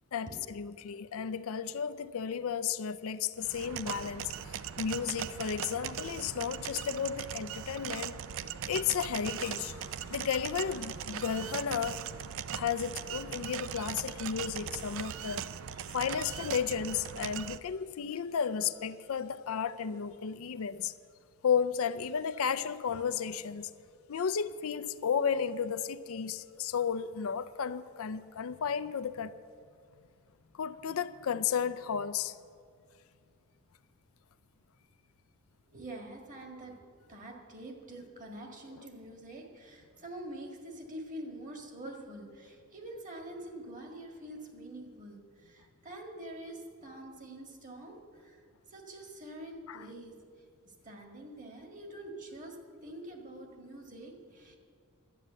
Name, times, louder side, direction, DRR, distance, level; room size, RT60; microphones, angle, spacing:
voice 1, 0.1-8.2 8.7-12.0 12.5-15.5 15.9-20.9 21.4-23.7 24.1-29.3 30.6-32.3 49.7-49.9, left 7 dB, 65° left, 0.4 m, -33 dB
sound 1, 3.4-17.6, right 8 dB, 60° right, 0.4 m, -40 dB
voice 2, 35.7-48.4 48.7-50.1 50.6-52.6 52.8-54.6, right 1 dB, 35° right, 1.8 m, -46 dB
11.5 x 9.3 x 7.4 m
head